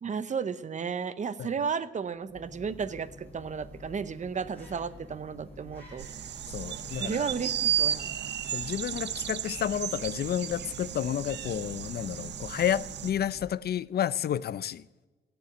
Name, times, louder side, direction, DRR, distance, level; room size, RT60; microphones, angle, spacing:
voice 1, 0.0-6.1 6.9-8.1, right 6 dB, 40° right, 0.7 m, -33 dB
sound 1, 2.1-13.9, left 1 dB, 10° left, 6.0 m, -50 dB
sound 2, 6.0-13.1, right 9 dB, 70° right, 0.6 m, -34 dB
voice 2, 6.5-7.3 8.5-14.8, left 10 dB, 60° left, 0.5 m, -31 dB
17.0 x 7.0 x 9.2 m
cardioid pair, 120°, 18 cm